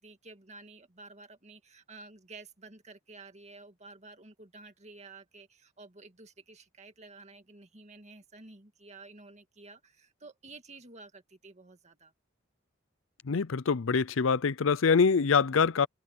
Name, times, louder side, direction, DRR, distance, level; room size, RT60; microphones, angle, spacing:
voice 1, 0.0-12.1, right 3 dB, 35° right, 2.1 m, -51 dB
voice 2, 13.2-15.9, left 5 dB, 70° left, 0.6 m, -25 dB
head